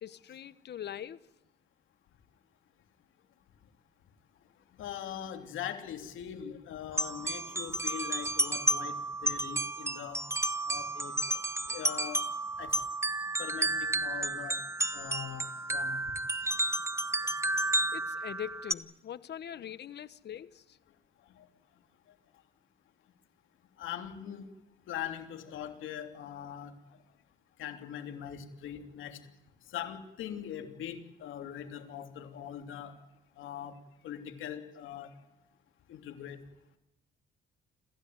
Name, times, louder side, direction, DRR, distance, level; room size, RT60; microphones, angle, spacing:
voice 1, 0.0-1.3 17.9-20.8, left 10 dB, 60° left, 1.2 m, -42 dB
voice 2, 4.8-10.2 10.7-11.1 11.7-12.2 12.6-12.7 13.4-14.6 14.9-16.0 21.3-21.5 23.8-24.5 24.9-26.7 27.6-29.2 29.7-32.9 33.4-33.8 34.0-35.1 35.9-36.4, left 9 dB, 80° left, 3.0 m, -41 dB
sound 1, 6.9-18.7, right 2 dB, 15° right, 1.0 m, -32 dB
27.0 x 15.0 x 9.4 m
cardioid pair, 90°, 20 cm